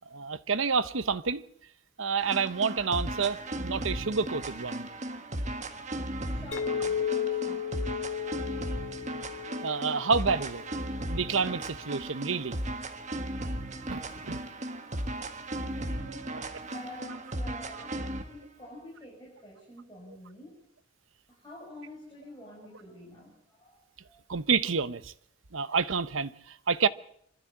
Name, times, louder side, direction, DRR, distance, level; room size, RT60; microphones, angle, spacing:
voice 1, 0.1-1.4 2.0-4.9 9.6-10.6 11.1-12.6 13.9-14.4 16.3-16.4 24.3-25.1 25.5-26.9, right 5 dB, 80° right, 0.9 m, -29 dB
sound 1, 2.2-18.3, right 1 dB, 35° right, 1.6 m, -36 dB
voice 2, 6.3-7.9 15.6-20.6 21.3-24.2, left 1 dB, 20° left, 6.7 m, -48 dB
Chink clink, 6.5-11.0, left 8 dB, 70° left, 2.7 m, -34 dB
25.5 x 13.0 x 8.6 m
head